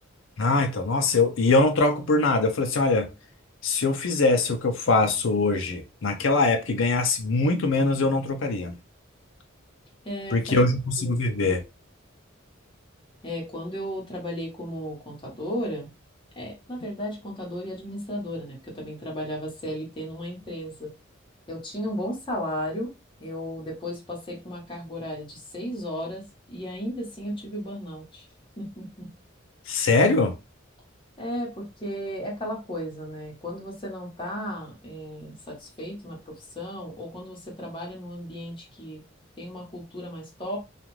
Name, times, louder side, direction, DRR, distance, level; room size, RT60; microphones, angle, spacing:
voice 1, 0.4-3.1 3.6-8.8 10.3-11.6 29.7-30.3, left 3 dB, 70° left, 0.5 m, -22 dB
voice 2, 10.0-10.6 11.0-11.4 13.2-15.9 16.3-20.9 21.5-22.9 23.2-26.2 26.5-28.2 28.6-29.1 31.2-39.0 39.4-40.6, equal, 25° left, 1.1 m, -34 dB
2.4 x 2.4 x 3.1 m
head